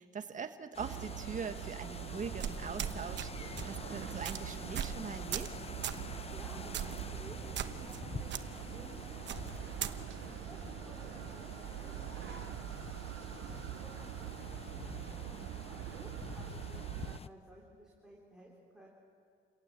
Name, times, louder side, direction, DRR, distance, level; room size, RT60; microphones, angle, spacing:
voice 1, 0.0-5.5, right 6 dB, 40° right, 7 dB, 1.6 m, -42 dB
sound 1, 0.7-17.3, left 5 dB, 30° left, 0.7 m, -47 dB
sound 2, 0.8-17.2, right 16 dB, 90° right, 0.6 m, -44 dB
sound 3, 2.4-3.3 3.6-3.8 4.2-4.4 4.8-5.0 5.3-5.5 5.8-6.0 6.7-7.0 7.6-8.0 8.3-8.4 9.3-9.9, right 9 dB, 65° right, 1.1 m, -37 dB
voice 2, 3.4-3.7 6.1-12.9 13.6-18.9, right 1 dB, 5° right, -4 dB, 4.3 m, -56 dB
29.0 x 17.5 x 7.7 m, 2.5 s
cardioid pair, 90°, 20 cm